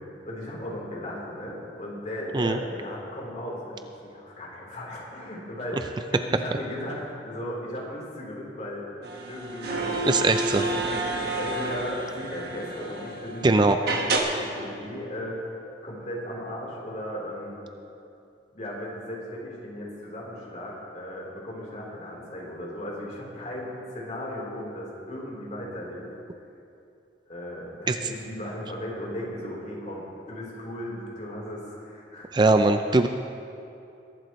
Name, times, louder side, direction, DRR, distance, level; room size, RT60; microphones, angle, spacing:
voice 1, 0.0-5.8 6.1-8.9 9.3-10.1 10.9-17.5 18.5-26.1 27.3-32.3, left 1 dB, 45° left, -4 dB, 3.6 m, -36 dB
sound 1, 9.0-13.4 13.9-14.2, right 2 dB, 60° right, 1.5 m, -30 dB
voice 2, 10.1-10.7 13.4-13.8 27.9-28.0 32.3-33.1, right 2 dB, 25° right, 7 dB, 0.4 m, -20 dB
22.0 x 12.0 x 3.1 m, 2.7 s
head